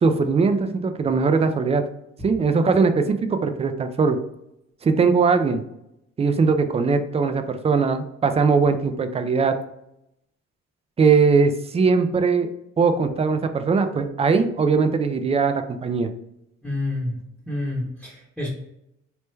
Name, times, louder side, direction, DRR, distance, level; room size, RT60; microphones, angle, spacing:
voice 1, 0.0-1.8 2.2-4.2 4.8-5.6 6.2-9.5 11.0-12.5 12.8-16.1, right 4 dB, 20° right, 8 dB, 0.3 m, -20 dB
voice 2, 16.6-17.1 17.5-18.5, left 2 dB, ahead, -4 dB, 0.9 m, -28 dB
3.3 x 2.1 x 3.1 m, 0.82 s
cardioid pair, 90°, 30 cm